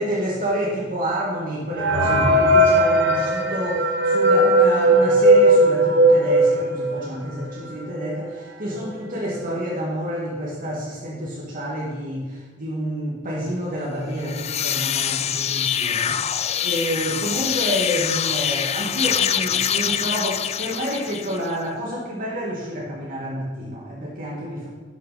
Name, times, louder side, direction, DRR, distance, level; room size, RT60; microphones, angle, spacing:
voice 1, 0.0-24.7, equal, 45° right, -4 dB, 1.6 m, -29 dB
sound 1, 1.8-7.2 7.7-7.8 8.0-8.1 8.8-8.9 9.3-9.6, right 1 dB, 60° right, 1.0 m, -17 dB
sound 2, 14.1-21.6, left 9 dB, 35° left, 0.3 m, -24 dB
10.5 x 5.8 x 5.3 m, 1.3 s
head